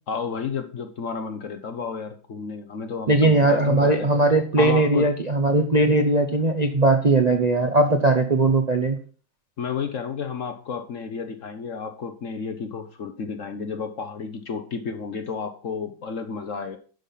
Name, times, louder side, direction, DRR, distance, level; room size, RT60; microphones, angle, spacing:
voice 1, 0.1-4.1 4.6-5.1 9.6-16.8, left 5 dB, 50° left, 8 dB, 1.1 m, -31 dB
voice 2, 3.1-9.0, right 2 dB, 35° right, 5 dB, 0.6 m, -19 dB
11.0 x 5.5 x 5.8 m, 0.41 s
omnidirectional pair, 2.0 m